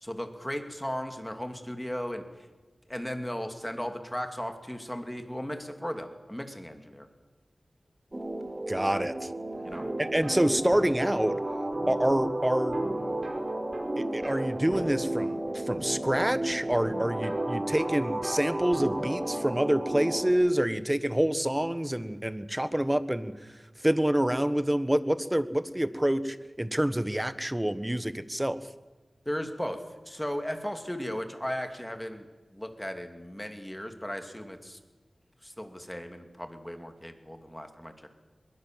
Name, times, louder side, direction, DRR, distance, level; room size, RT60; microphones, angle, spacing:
voice 1, 0.0-2.2 2.9-7.1 9.6-9.9 29.3-32.3 32.5-34.8 35.4-38.1, equal, 10° left, 6 dB, 2.6 m, -36 dB
sound 1, 8.1-20.3, right 1 dB, 30° right, 3.8 m, -33 dB
voice 2, 8.7-9.3 10.0-11.3 11.9-12.8 14.0-28.6, right 1 dB, 15° right, 13 dB, 1.3 m, -27 dB
sound 2, 9.5-19.4, right 1 dB, 55° right, 5.3 m, -43 dB
22.0 x 22.0 x 7.6 m, 1.3 s
wide cardioid pair, 65°, 0 cm